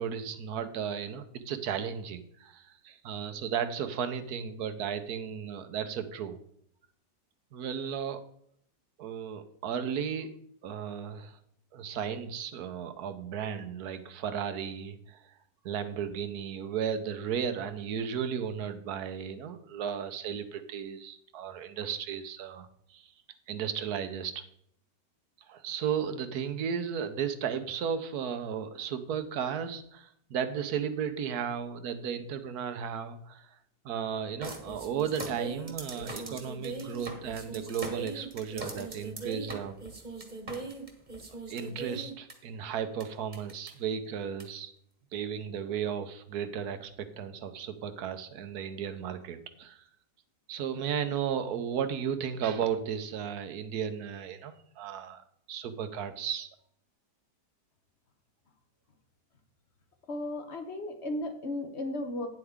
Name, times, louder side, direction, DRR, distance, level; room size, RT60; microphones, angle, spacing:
voice 1, 0.0-6.4 7.5-8.2 9.0-10.3 10.6-11.4 11.7-15.2 15.6-23.1 23.5-24.4 25.5-33.6 33.8-39.8 41.5-44.7 45.1-49.8 50.5-55.2 55.5-56.5, right 8 dB, 65° right, 10 dB, 1.3 m, -34 dB
sound 1, 34.4-42.3 43.0-43.1 43.3-43.7 44.4-44.5, right 3 dB, 25° right, 1.4 m, -40 dB
voice 2, 60.1-62.3, left 1 dB, 45° left, 6 dB, 1.2 m, -35 dB
9.8 x 7.9 x 3.7 m, 0.69 s
omnidirectional pair, 1.9 m